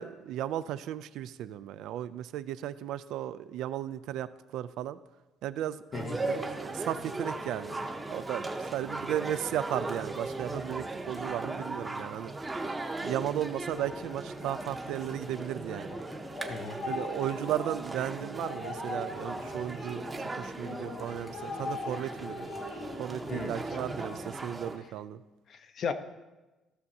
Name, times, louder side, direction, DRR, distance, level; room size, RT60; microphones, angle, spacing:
voice 1, 0.0-5.0 5.4-5.8 6.3-7.7 8.1-12.6 13.0-16.0 16.4-16.5 16.8-22.5 23.0-25.2, right 11 dB, 80° right, 14 dB, 0.3 m, -35 dB
sound 1, 5.9-24.8, right 2 dB, 15° right, 0.7 m, -38 dB
sound 2, 13.5-24.2, left 3 dB, 85° left, 1.8 m, -42 dB
voice 2, 25.5-25.9, left 5 dB, 45° left, 9 dB, 0.6 m, -35 dB
14.5 x 6.4 x 2.8 m, 1.1 s
cardioid pair, 160°, 0 cm